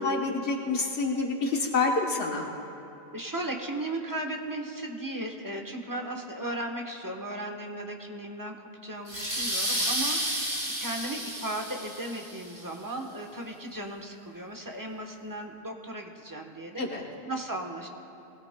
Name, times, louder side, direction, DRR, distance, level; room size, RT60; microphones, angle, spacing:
voice 1, 0.0-2.5 16.8-17.0, left 3 dB, 80° left, 0 dB, 1.4 m, -27 dB
voice 2, 3.1-17.9, right 1 dB, 20° right, 2 dB, 1.0 m, -36 dB
sound 1, 9.1-12.5, equal, 40° right, 4.2 m, -31 dB
22.5 x 17.5 x 2.2 m, 2.9 s
omnidirectional pair, 1.1 m